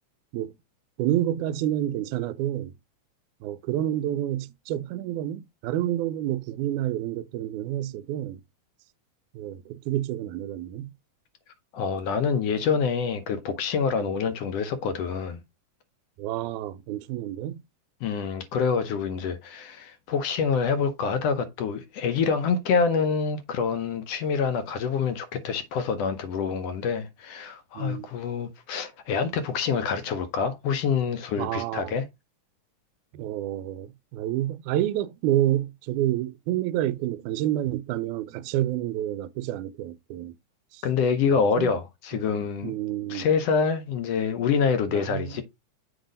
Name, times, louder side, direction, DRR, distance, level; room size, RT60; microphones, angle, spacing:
voice 1, 1.0-2.7 3.4-8.4 9.3-10.9 14.0-14.1 16.2-17.6 27.8-28.1 31.4-32.0 33.1-40.3 40.7-40.8 41.6-41.7 42.6-43.3 44.9-45.4, right 13 dB, 85° right, 2.0 m, -29 dB
voice 2, 11.7-15.4 18.0-32.0 40.8-42.7 43.1-45.4, left 6 dB, 75° left, 1.5 m, -26 dB
7.9 x 2.7 x 5.1 m
omnidirectional pair, 3.5 m